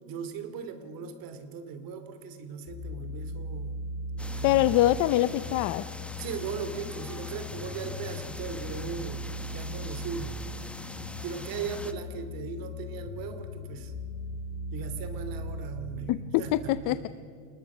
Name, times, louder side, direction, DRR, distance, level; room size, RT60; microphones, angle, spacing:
voice 1, 0.1-3.8 4.3-4.6 6.2-10.4 11.2-13.9 14.7-16.1 16.4-17.1, right 6 dB, 50° right, 10 dB, 2.7 m, -38 dB
sound 1, 2.7-16.5, left 1 dB, 65° left, 6.5 m, -38 dB
sound 2, 4.2-11.9, left 1 dB, 5° left, 0.8 m, -43 dB
voice 2, 4.4-5.9 16.1-17.1, left 15 dB, 45° left, 15 dB, 0.6 m, -24 dB
29.0 x 20.5 x 6.1 m, 2.2 s
cardioid pair, 145°, 43 cm